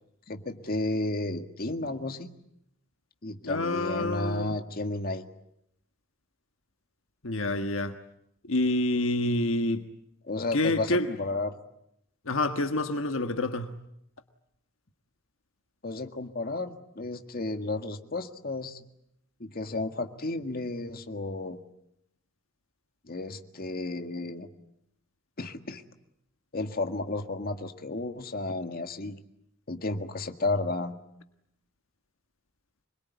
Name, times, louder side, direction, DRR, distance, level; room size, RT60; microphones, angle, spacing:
voice 1, 0.3-2.3 3.2-5.2 10.3-11.6 15.8-18.8 19.4-21.6 23.0-24.5 25.4-25.8 26.5-29.2 29.7-31.0, left 2 dB, 45° left, 1.8 m, -32 dB
voice 2, 3.4-4.5 7.2-7.9 8.5-9.8 10.5-11.1 12.2-13.7, left 2 dB, 70° left, 1.5 m, -27 dB
25.5 x 22.5 x 9.5 m
head